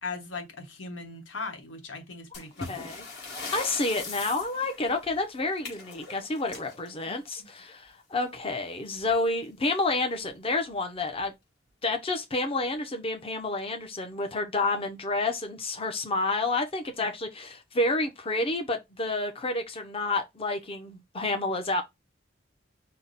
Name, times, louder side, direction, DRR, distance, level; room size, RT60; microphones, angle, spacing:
voice 1, 0.0-2.9 4.8-4.9 7.1-7.2 17.0-17.1, left 3 dB, 90° left, 1.2 m, -39 dB
sound 1, 2.3-7.7 9.0-9.1 9.4-9.5 10.2-10.3 11.0-11.2, left 3 dB, 60° left, 1.9 m, -41 dB
voice 2, 2.7-3.0 3.5-11.3 11.8-21.8, left 2 dB, 30° left, 0.7 m, -29 dB
5.6 x 2.1 x 4.0 m
head